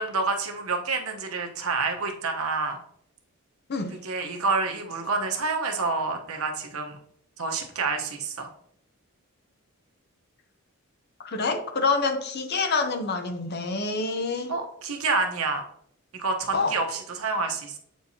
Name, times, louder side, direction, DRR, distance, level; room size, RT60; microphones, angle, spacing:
voice 1, 0.0-2.8 4.0-7.0 7.4-8.5 14.5-15.6 16.1-17.8, right 3 dB, 70° right, 1.0 m, -28 dB
voice 2, 11.2-14.5 16.5-16.8, left 4 dB, 45° left, 0.6 m, -27 dB
7.7 x 4.6 x 2.8 m
head